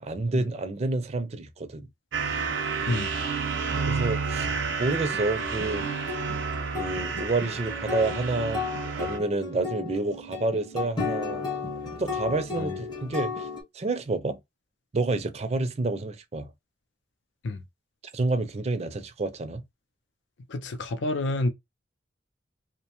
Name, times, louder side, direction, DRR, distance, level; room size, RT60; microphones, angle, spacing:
voice 1, 0.0-1.9 3.8-4.5 4.8-5.9 6.8-8.6 9.0-11.5 12.0-13.5 13.7-14.4 14.9-16.5 18.1-19.6, right 2 dB, 35° right, 0.4 m, -29 dB
sound 1, 2.1-9.2, right 5 dB, 85° right, 0.6 m, -30 dB
sound 2, 3.8-13.6, left 5 dB, 25° left, 0.7 m, -35 dB
voice 2, 20.5-21.5, left 2 dB, 80° left, 0.5 m, -29 dB
2.7 x 2.1 x 2.9 m
head